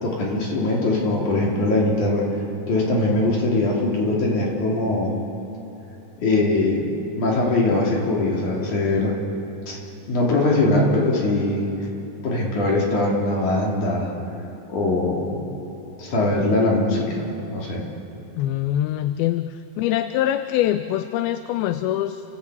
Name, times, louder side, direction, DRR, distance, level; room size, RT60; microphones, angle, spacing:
voice 1, 0.0-2.3 2.7-5.1 6.2-6.9 7.2-9.2 9.7-9.8 10.1-11.7 12.2-14.1 14.7-15.4 16.0-17.2 17.5-17.8, left 2 dB, 55° left, -3 dB, 4.4 m, -21 dB
voice 2, 18.4-22.2, left 12 dB, 90° left, 9 dB, 2.5 m, -24 dB
29.5 x 15.0 x 8.5 m, 3.0 s
omnidirectional pair, 4.2 m